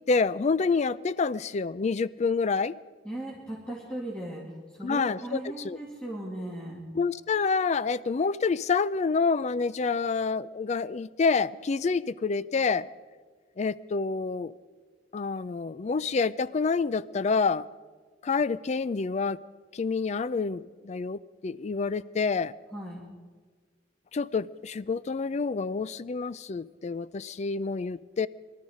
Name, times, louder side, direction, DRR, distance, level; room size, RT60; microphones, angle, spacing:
voice 1, 0.1-2.7 4.8-5.4 5.6-5.8 7.0-12.9 13.6-14.5 15.1-17.7 18.2-19.4 19.7-22.5 24.1-28.3, left 4 dB, 40° left, 0.4 m, -28 dB
voice 2, 3.0-4.4 4.7-6.8 22.7-23.0, right 1 dB, 5° left, 2.2 m, -37 dB
23.0 x 12.5 x 5.0 m
head